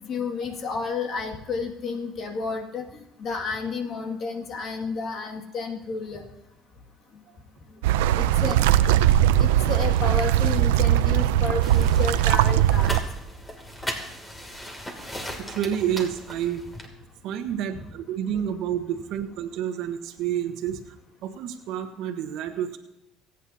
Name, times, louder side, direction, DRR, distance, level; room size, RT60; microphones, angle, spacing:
voice 1, 0.0-2.9 3.2-6.2 8.2-8.8 9.4-12.9 17.7-17.8, left 4 dB, 50° left, 2 dB, 2.2 m, -31 dB
sound 1, 7.8-13.0, right 12 dB, 90° right, 0.5 m, -20 dB
sound 2, 11.6-16.9, equal, 15° left, 2.7 m, -37 dB
voice 2, 15.4-16.6 17.2-20.8 21.2-22.8, right 10 dB, 70° right, 6 dB, 1.3 m, -29 dB
27.0 x 9.3 x 2.8 m, 0.93 s
supercardioid pair, 85°, 0 cm